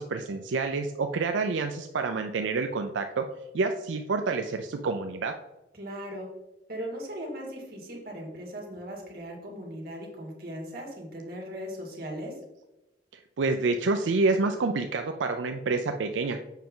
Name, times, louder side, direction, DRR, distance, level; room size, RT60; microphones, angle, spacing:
voice 1, 0.0-3.2 3.5-5.3 13.4-16.4, right 3 dB, 90° right, 6 dB, 0.4 m, -28 dB
voice 2, 5.7-6.3 6.7-12.4, equal, 55° right, -1 dB, 2.2 m, -38 dB
7.4 x 5.7 x 3.8 m, 0.99 s
head